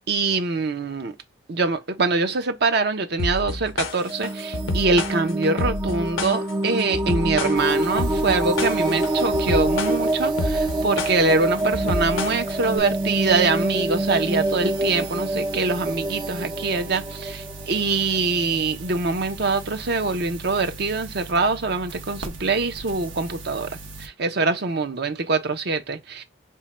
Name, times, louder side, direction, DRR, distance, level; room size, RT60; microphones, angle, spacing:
voice 1, 0.1-1.1 1.5-26.2, right 3 dB, 55° right, 0.7 m, -24 dB
sound 1, 3.2-12.8, left 2 dB, 80° left, 0.7 m, -29 dB
sound 2, 3.9-18.6, right 1 dB, 20° right, 0.3 m, -26 dB
sound 3, 7.5-24.1, right 3 dB, 75° right, 1.1 m, -39 dB
3.6 x 2.2 x 4.1 m
head